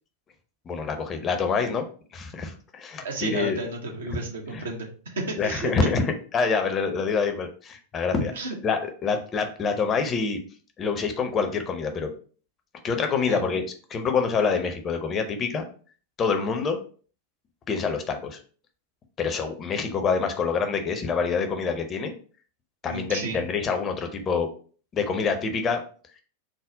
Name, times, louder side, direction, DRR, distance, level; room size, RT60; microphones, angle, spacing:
voice 1, 0.7-1.8 2.1-3.6 4.5-4.6 5.4-6.1 6.3-8.3 8.6-10.4 10.8-12.1 12.8-13.6 13.9-15.6 16.2-16.8 17.7-18.4 19.2-22.1 22.8-24.5 24.9-25.8, left 5 dB, 25° left, 5 dB, 0.6 m, -26 dB
voice 2, 3.0-5.7 8.4-8.5 13.3-13.4 22.8-23.4, right 2 dB, 65° right, 1 dB, 0.8 m, -32 dB
3.7 x 2.0 x 3.8 m, 0.41 s
figure-of-eight pair, 90°, 0 cm